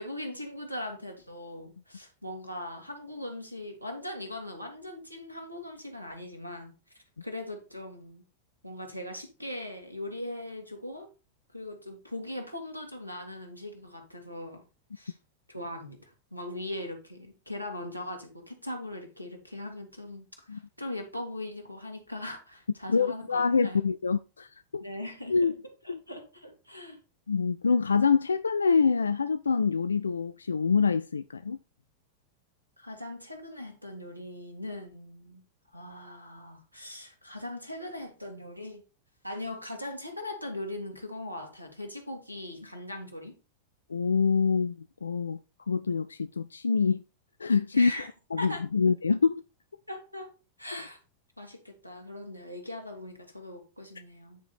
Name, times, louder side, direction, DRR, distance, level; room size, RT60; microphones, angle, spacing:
voice 1, 0.0-8.2 8.6-11.1 11.5-14.6 15.0-15.2 15.5-23.8 24.8-25.5 25.8-27.0 32.8-35.4 35.7-38.8 39.2-43.3 47.7-48.1 48.4-48.6 49.9-51.0 51.4-54.4, left 1 dB, 90° right, 1.9 m, -40 dB
voice 2, 22.9-24.8 25.3-25.5 25.9-26.0 27.3-31.6 43.9-45.4 45.7-47.0 47.4-47.9 48.3-49.4, left 5 dB, 75° left, 0.3 m, -26 dB
9.2 x 4.9 x 4.2 m
figure-of-eight pair, 90°, 0 cm